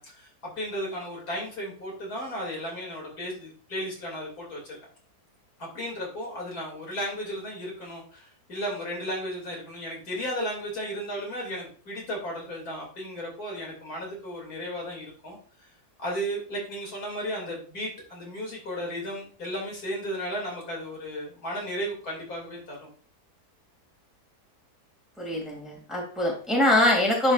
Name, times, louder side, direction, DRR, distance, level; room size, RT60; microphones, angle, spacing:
voice 1, 0.0-4.8 5.6-15.7 16.0-22.9, equal, 70° left, -2 dB, 3.3 m, -34 dB
voice 2, 25.2-27.3, left 1 dB, ahead, -3 dB, 2.5 m, -23 dB
11.0 x 5.1 x 2.5 m, 0.41 s
omnidirectional pair, 1.7 m